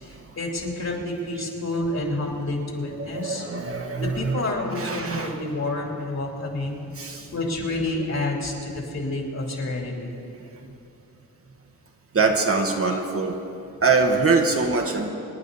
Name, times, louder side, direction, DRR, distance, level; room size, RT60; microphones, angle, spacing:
voice 1, 0.0-3.5 4.0-10.1, left 2 dB, 50° left, -1 dB, 3.6 m, -29 dB
voice 2, 3.0-4.5 4.7-5.4 6.9-7.3 10.4-10.5 12.1-13.4 13.8-15.1, right 4 dB, 40° right, 2 dB, 1.5 m, -23 dB
27.0 x 9.9 x 4.1 m, 2.7 s
cardioid pair, 70°, 36 cm